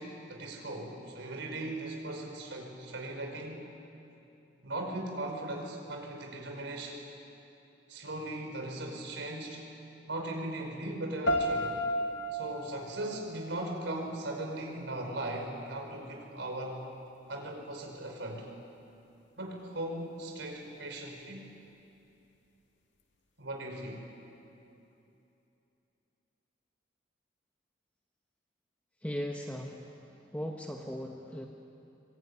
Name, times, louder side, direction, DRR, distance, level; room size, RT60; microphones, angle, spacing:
voice 1, 0.0-3.7 4.6-7.0 7.9-9.7 10.1-11.8 12.3-16.8 17.3-18.5 19.4-21.5 23.4-24.1, right 1 dB, 75° right, 2 dB, 5.0 m, -38 dB
sound 1, 11.3-14.3, equal, 75° left, 1.9 m, -33 dB
voice 2, 29.0-29.8 30.3-31.5, equal, 10° left, 1 dB, 1.3 m, -37 dB
24.0 x 22.5 x 9.8 m, 2.8 s
head